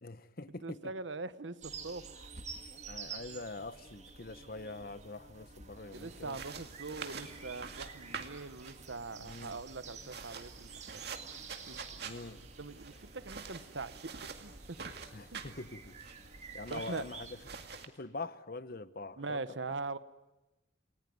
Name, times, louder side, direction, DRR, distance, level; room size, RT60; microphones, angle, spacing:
voice 1, 0.0-0.8 2.9-6.4 9.2-9.6 12.0-12.4 15.1-16.0 16.5-17.4 18.0-19.4, left 2 dB, 50° left, 14 dB, 1.0 m, -44 dB
voice 2, 0.6-2.3 5.9-11.1 11.7-12.0 12.6-14.0 14.4-14.8 15.3-15.4 16.7-17.1 19.2-20.0, right 3 dB, 75° right, 14 dB, 1.1 m, -42 dB
sound 1, 1.6-17.5, right 5 dB, 35° right, 2.2 m, -50 dB
sound 2, 5.9-17.9, right 5 dB, 55° right, 2.2 m, -47 dB
29.5 x 19.5 x 9.5 m, 1.0 s
head